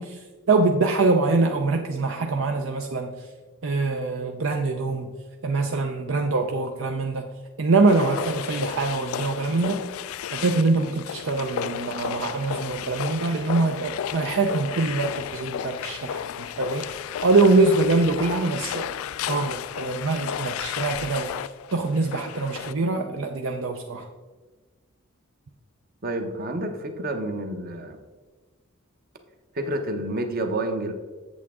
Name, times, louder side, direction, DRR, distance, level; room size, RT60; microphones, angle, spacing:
voice 1, 0.0-3.3 3.6-5.1 5.4-7.3 7.6-9.8 10.3-18.9 19.3-24.1, right 3 dB, 65° right, 4 dB, 0.5 m, -24 dB
sound 1, 7.9-22.7, left 9 dB, 75° left, 0.3 m, -33 dB
voice 2, 26.0-28.0 29.5-30.9, right 1 dB, 45° right, 6 dB, 0.9 m, -29 dB
8.2 x 7.4 x 3.6 m, 1.3 s
head